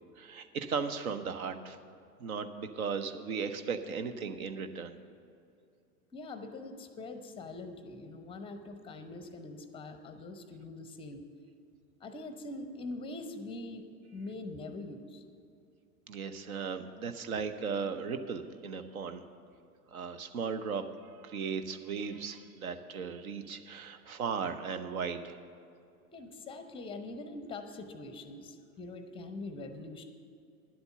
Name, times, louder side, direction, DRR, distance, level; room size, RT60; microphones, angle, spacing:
voice 1, 0.2-1.8 2.2-4.9 16.1-19.2 19.9-25.4, right 5 dB, 65° right, 9 dB, 0.9 m, -36 dB
voice 2, 6.1-11.2 12.0-13.8 14.1-15.2 26.1-30.0, left 2 dB, 10° left, 8 dB, 0.6 m, -43 dB
10.5 x 8.1 x 6.7 m, 2.5 s
figure-of-eight pair, 90°, 46 cm